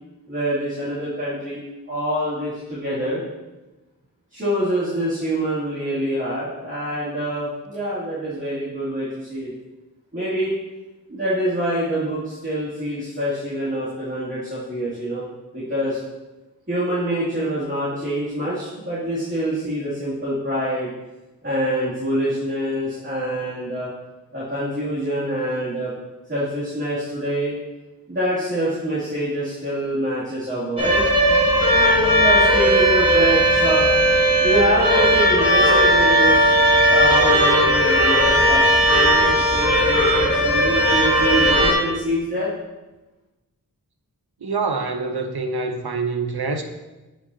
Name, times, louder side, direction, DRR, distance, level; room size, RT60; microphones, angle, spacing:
voice 1, 0.3-1.6 1.9-3.2 4.3-9.5 10.1-10.5 11.1-15.3 15.5-16.0 16.7-20.9 21.4-23.9 24.3-25.9 26.3-27.5 28.1-31.0 31.7-33.9 34.4-36.4 36.9-42.5, equal, 30° right, -11 dB, 2.6 m, -25 dB
sound 1, 30.8-41.7, right 1 dB, 15° right, 2.0 m, -17 dB
voice 2, 44.4-46.6, right 4 dB, 85° right, 5 dB, 0.8 m, -25 dB
9.6 x 5.4 x 2.8 m, 1.1 s
wide cardioid pair, 50°, 37 cm